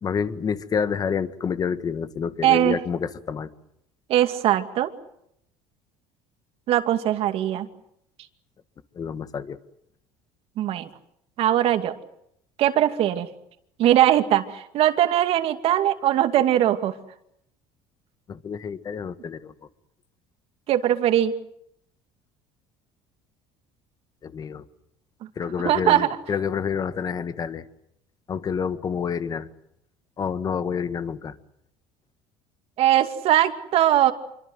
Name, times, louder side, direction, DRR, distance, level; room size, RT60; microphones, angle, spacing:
voice 1, 0.0-3.5 8.9-9.6 18.3-19.5 24.2-24.6 25.3-27.6 28.3-29.5 30.2-31.3, left 6 dB, 35° left, 12 dB, 1.7 m, -28 dB
voice 2, 2.4-2.8 4.1-4.9 6.7-7.7 10.6-10.9 11.4-11.9 12.6-13.3 13.8-17.0 20.7-21.4 25.2-25.3 25.6-26.2 32.8-34.1, right 12 dB, 60° right, 8 dB, 2.4 m, -20 dB
26.5 x 24.0 x 8.0 m, 0.75 s
cardioid pair, 115°, 11 cm